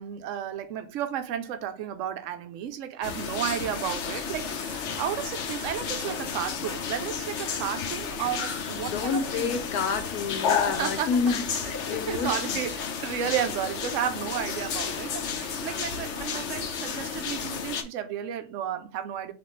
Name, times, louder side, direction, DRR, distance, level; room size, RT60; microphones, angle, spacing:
voice 1, 0.0-9.6 10.8-11.1 12.1-19.3, right 10 dB, 65° right, 0.9 m, -33 dB
sound 1, 3.0-17.8, left 6 dB, 60° left, 0.9 m, -32 dB
voice 2, 8.8-12.6, left 5 dB, 80° left, 1.2 m, -29 dB
4.2 x 3.6 x 3.1 m
omnidirectional pair, 1.6 m